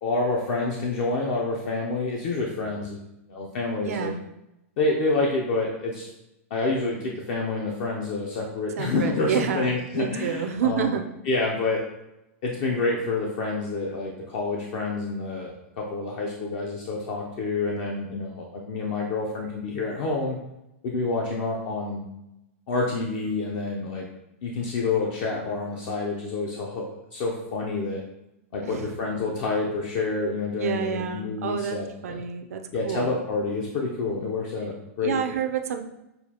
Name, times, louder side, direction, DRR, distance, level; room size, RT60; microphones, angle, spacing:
voice 1, 0.0-3.0 3.3-4.1 4.8-6.1 6.5-11.0 11.3-11.8 12.4-20.4 20.8-22.0 22.7-24.1 24.4-26.8 27.1-28.0 28.5-32.2 32.7-35.2, left 3 dB, 45° left, -1 dB, 0.6 m, -28 dB
voice 2, 3.8-4.3 8.8-11.0 28.6-28.9 30.6-33.2 35.0-35.8, right 7 dB, 85° right, 6 dB, 0.5 m, -29 dB
6.4 x 2.4 x 2.8 m, 0.89 s
supercardioid pair, 150°, 8 cm